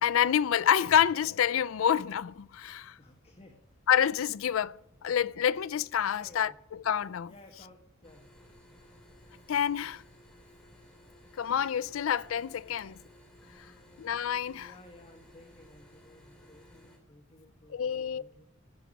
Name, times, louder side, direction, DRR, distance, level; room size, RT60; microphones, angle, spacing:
voice 1, 0.0-2.9 3.9-4.8 5.0-7.3 9.5-10.0 11.4-13.0 14.0-14.7 17.7-18.2, left 9 dB, 70° left, 0.4 m, -27 dB
voice 2, 3.0-3.8 6.0-6.6 7.3-8.3 13.4-14.0 14.6-18.4, left 1 dB, 30° left, 1.4 m, -56 dB
sound 1, 8.0-17.0, equal, 5° left, 3.0 m, -57 dB
16.0 x 5.9 x 9.3 m
head